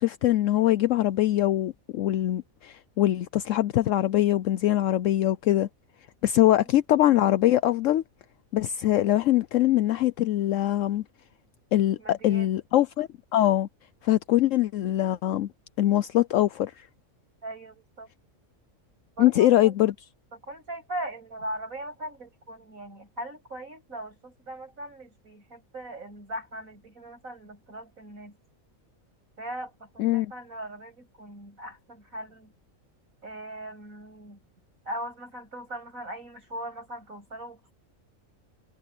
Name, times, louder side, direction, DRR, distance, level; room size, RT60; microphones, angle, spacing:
voice 1, 0.0-5.7 6.2-8.0 8.5-11.0 11.7-13.7 14.0-15.5 15.8-16.9 19.2-19.9 30.0-30.3, left 14 dB, 70° left, 0.9 m, -23 dB
voice 2, 12.0-12.5 17.4-18.1 19.2-19.7 20.3-28.4 29.4-32.5 33.2-34.4 34.8-37.7, right 1 dB, 80° right, 8.5 m, -39 dB
omnidirectional pair, 1.4 m